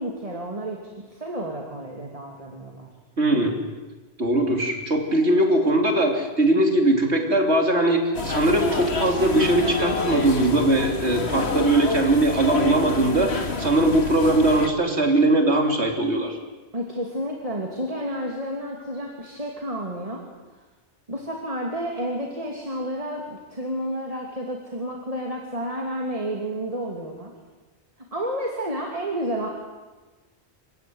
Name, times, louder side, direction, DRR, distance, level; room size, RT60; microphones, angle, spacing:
voice 1, 0.0-2.9 16.7-20.2 21.1-27.3 28.1-29.5, equal, 35° right, 1 dB, 2.9 m, -31 dB
voice 2, 3.2-3.6 4.2-16.4, right 1 dB, 85° right, 3 dB, 3.5 m, -20 dB
sound 1, 8.1-14.7, left 3 dB, 75° left, 2.2 m, -28 dB
27.5 x 16.0 x 9.6 m, 1.3 s
omnidirectional pair, 1.1 m